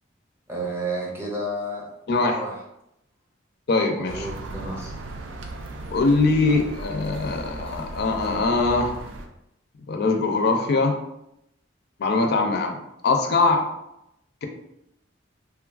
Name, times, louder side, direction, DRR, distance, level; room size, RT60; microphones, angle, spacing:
voice 1, 0.5-1.9 2.3-2.6 3.9-4.9 6.5-6.6, right 1 dB, 15° right, -3 dB, 0.6 m, -31 dB
voice 2, 2.1-2.4 3.7-4.3 5.9-8.9 9.9-11.0 12.0-12.8 13.0-13.7, left 3 dB, 55° left, 4 dB, 0.4 m, -22 dB
sound 1, 4.1-9.3, right 2 dB, 75° right, 0.4 m, -37 dB
3.1 x 2.3 x 2.4 m, 0.83 s
head